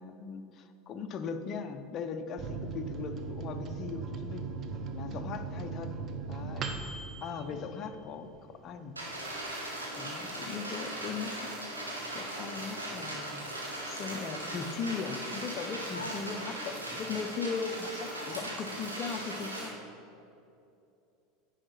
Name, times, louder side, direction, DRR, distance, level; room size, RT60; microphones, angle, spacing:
voice 1, 0.0-4.5 4.9-5.9 6.3-6.7 7.2-8.9 9.3-9.4 10.0-11.3 12.1-13.4 13.8-19.8, left 5 dB, 40° left, 8 dB, 0.7 m, -38 dB
Microwave oven, 2.4-8.5 8.9-9.0 9.2-9.9, right 4 dB, 35° right, 0.8 m, -39 dB
sound 1, 9.0-19.7, right 1 dB, 90° right, 1.9 m, -39 dB
voice 2, 15.9-16.2 18.1-18.5, left 2 dB, 90° left, 5 dB, 0.8 m, -45 dB
9.8 x 5.0 x 5.9 m, 2.7 s
figure-of-eight pair, 80°, 0 cm